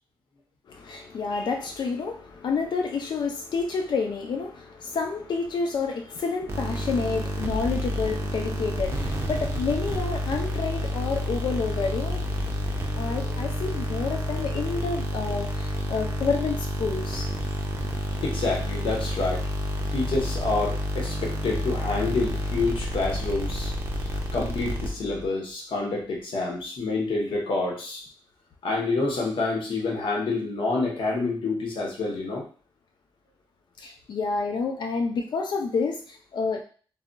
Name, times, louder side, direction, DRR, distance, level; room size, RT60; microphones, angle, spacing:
voice 1, 0.7-17.3 33.8-36.6, left 4 dB, 60° left, 3 dB, 0.4 m, -29 dB
sound 1, 6.5-25.3, equal, 30° right, 0.4 m, -29 dB
voice 2, 18.2-19.5 19.9-23.7 24.3-28.0 28.6-32.5, left 3 dB, 75° left, -1 dB, 0.8 m, -28 dB
2.2 x 2.0 x 3.7 m, 0.41 s
wide cardioid pair, 155°, 9 cm